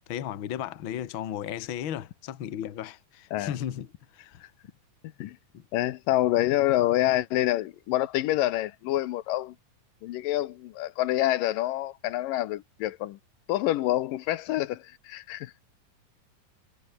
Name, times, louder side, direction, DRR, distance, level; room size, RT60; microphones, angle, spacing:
voice 1, 0.1-3.9 4.1-4.4 5.5-5.6, left 10 dB, 50° left, 1.7 m, -35 dB
voice 2, 5.7-9.5 10.0-13.2 13.5-15.5, left 15 dB, 85° left, 2.6 m, -27 dB
omnidirectional pair, 3.8 m